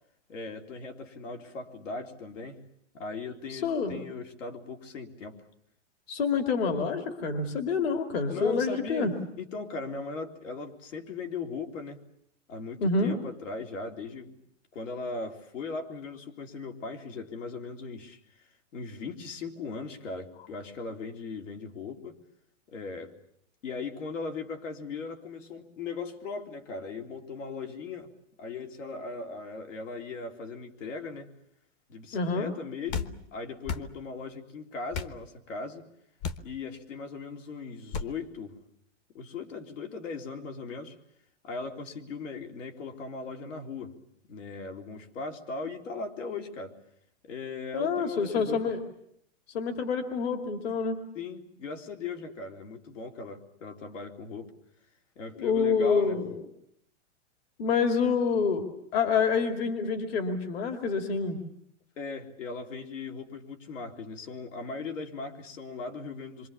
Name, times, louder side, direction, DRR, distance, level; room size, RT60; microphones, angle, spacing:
voice 1, 0.3-2.6 2.9-5.4 8.3-12.0 12.5-14.4 14.7-22.2 22.7-23.1 23.6-28.1 28.4-31.3 31.9-35.9 36.4-38.6 39.1-41.0 41.4-43.9 44.3-46.7 47.2-48.7 51.1-54.5 55.2-56.2 62.0-66.5, left 4 dB, 85° left, 5 dB, 3.7 m, -38 dB
voice 2, 3.5-4.0 6.1-9.1 12.8-13.2 32.1-32.5 47.7-48.8 49.5-51.1 55.3-56.4 57.6-61.4, left 5 dB, 55° left, 6 dB, 2.5 m, -27 dB
sound 1, 32.9-33.1 33.6-33.9 34.9-35.2 36.2-36.5 37.9-38.1, left 6 dB, 30° left, 1.0 m, -33 dB
27.5 x 24.5 x 7.2 m, 0.72 s
supercardioid pair, 165°, 37 cm